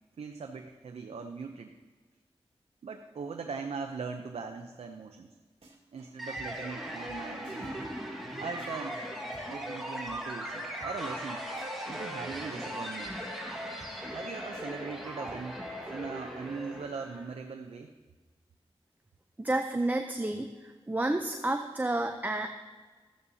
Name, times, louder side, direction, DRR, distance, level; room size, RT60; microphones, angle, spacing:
voice 1, 0.2-1.7 2.8-5.4 5.9-7.8 8.4-9.1 9.5-11.4 11.9-13.2 14.1-15.6 15.9-17.9, right 5 dB, 80° right, 5 dB, 0.6 m, -40 dB
sound 1, 5.6-6.1 6.4-10.2 10.4-10.5 10.8-10.9 11.2-11.3 11.5-13.1 13.4-13.5 13.8-13.9 14.2-14.3 14.5-15.9, right 2 dB, 65° right, 1.7 m, -55 dB
sound 2, 6.2-17.3, equal, ahead, 1.7 m, -38 dB
voice 2, 19.4-22.5, right 2 dB, 15° right, 5 dB, 0.6 m, -30 dB
13.5 x 9.6 x 2.8 m, 1.4 s
wide cardioid pair, 60°, 10 cm